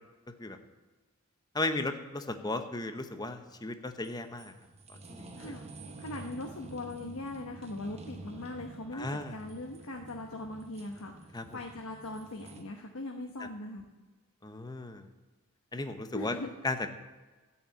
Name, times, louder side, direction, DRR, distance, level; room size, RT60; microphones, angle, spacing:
voice 1, 1.5-4.5 5.1-5.5 8.9-9.3 11.3-11.6 13.4-13.5 14.4-15.1 15.7-16.3 16.6-16.9, left 2 dB, 20° left, 8 dB, 0.9 m, -35 dB
sound 1, 3.2-12.6, right 2 dB, 30° right, 1.1 m, -49 dB
voice 2, 5.4-5.7 6.0-13.8 16.1-16.5, left 2 dB, 85° left, 2 dB, 1.1 m, -40 dB
13.0 x 5.9 x 8.6 m, 1.3 s
head